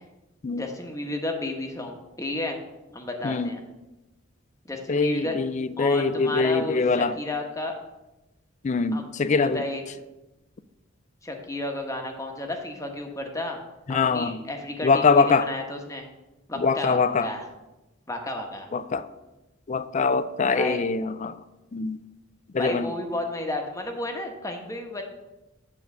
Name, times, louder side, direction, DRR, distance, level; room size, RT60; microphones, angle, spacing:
voice 1, 0.6-2.6 2.9-3.6 4.6-5.4 5.8-7.8 8.9-9.8 11.2-13.6 13.9-16.1 16.5-17.5 18.1-18.7 20.5-20.8 22.6-25.0, left 1 dB, 15° left, 3 dB, 1.1 m, -32 dB
voice 2, 4.9-7.1 8.6-9.6 13.9-14.4 14.8-15.5 16.6-17.3 18.7-19.0 19.7-21.4 21.7-22.0 22.5-22.9, left 4 dB, 35° left, 14 dB, 0.4 m, -23 dB
9.5 x 3.9 x 7.0 m, 1.0 s
head